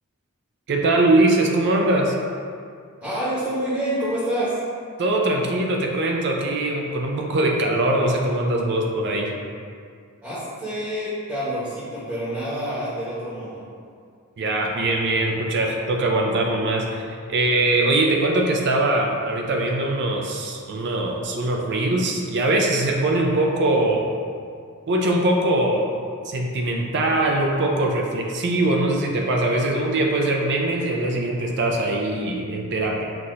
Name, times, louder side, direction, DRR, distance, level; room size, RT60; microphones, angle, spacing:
voice 1, 0.7-2.1 5.0-9.3 14.4-24.0 24.9-25.9 26.2-33.0, right 2 dB, 50° right, 0 dB, 0.4 m, -22 dB
voice 2, 3.0-4.6 10.2-13.6, right 1 dB, 15° right, -11 dB, 1.0 m, -27 dB
5.8 x 2.8 x 2.5 m, 2.2 s
head